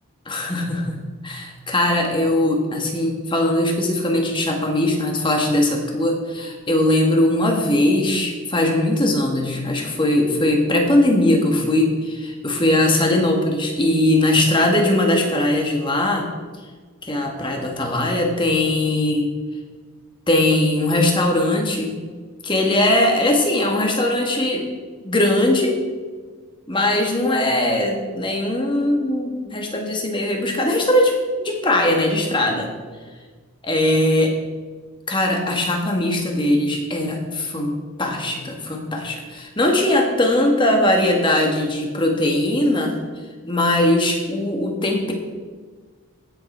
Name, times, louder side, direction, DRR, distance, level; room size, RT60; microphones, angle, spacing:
voice 1, 0.3-16.3 17.0-19.3 20.3-22.0 22.4-24.7 25.0-25.8 26.7-31.1 31.4-32.7 33.6-34.3 35.1-43.0 43.4-45.1, left 1 dB, 20° left, 2 dB, 1.5 m, -20 dB
16.0 x 6.8 x 4.4 m, 1.5 s
head